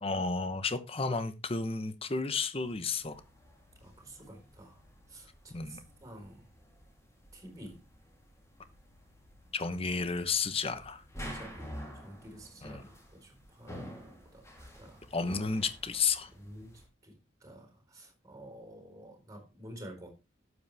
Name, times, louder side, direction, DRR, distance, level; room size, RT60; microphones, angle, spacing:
voice 1, 0.0-3.2 5.5-5.8 9.5-11.0 12.6-12.9 15.1-16.3, left 4 dB, 30° left, 11 dB, 1.0 m, -32 dB
sound 1, 2.6-16.9, equal, 15° left, 3.0 m, -50 dB
voice 2, 3.8-4.8 5.1-6.5 7.3-7.8 9.7-9.8 11.2-15.0 16.3-20.1, right 1 dB, 20° right, 2 dB, 4.3 m, -50 dB
12.0 x 8.2 x 3.4 m, 0.27 s
head